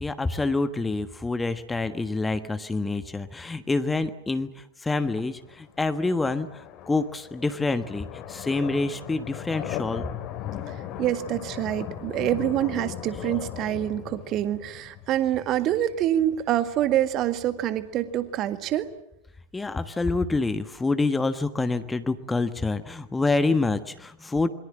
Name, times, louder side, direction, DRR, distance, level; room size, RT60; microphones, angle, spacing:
voice 1, 0.0-4.5 4.8-6.5 6.9-10.1 19.5-24.5, left 3 dB, 10° left, 10 dB, 1.4 m, -27 dB
sound 1, 5.1-19.0, left 10 dB, 40° left, 2.8 m, -39 dB
voice 2, 10.7-18.9, right 12 dB, 35° right, 11 dB, 1.9 m, -26 dB
27.5 x 23.0 x 7.6 m, 0.82 s
figure-of-eight pair, 90°, 0 cm